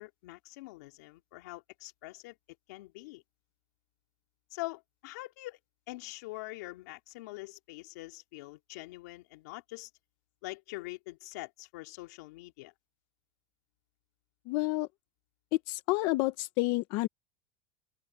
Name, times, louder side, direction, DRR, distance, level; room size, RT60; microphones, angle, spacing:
voice 1, 0.0-2.4 2.7-3.2 4.5-5.6 5.9-9.9 10.4-12.7, left 21 dB, 75° left, 3.2 m, -44 dB
voice 2, 14.5-14.9 15.7-17.1, left 20 dB, 55° left, 1.1 m, -29 dB
open air
supercardioid pair, 155°, 9 cm